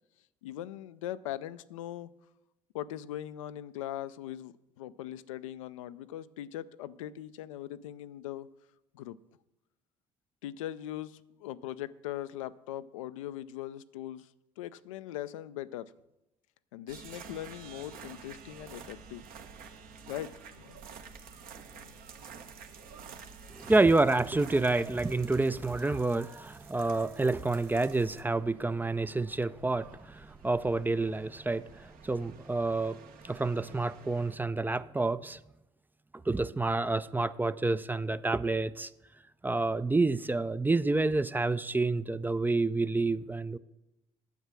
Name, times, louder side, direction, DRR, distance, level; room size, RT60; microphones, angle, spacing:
voice 1, 0.4-2.1 2.7-8.5 8.9-9.2 10.4-14.3 14.6-15.9 16.7-19.2 20.1-20.3 20.6-20.8 21.7-22.0, left 12 dB, 75° left, 0.4 m, -40 dB
sound 1, 16.9-34.4, right 6 dB, 60° right, 1.1 m, -50 dB
voice 2, 23.6-35.4 36.3-38.9 39.4-43.6, right 3 dB, 10° right, 0.4 m, -28 dB
9.3 x 7.2 x 6.1 m
figure-of-eight pair, 50°, 17 cm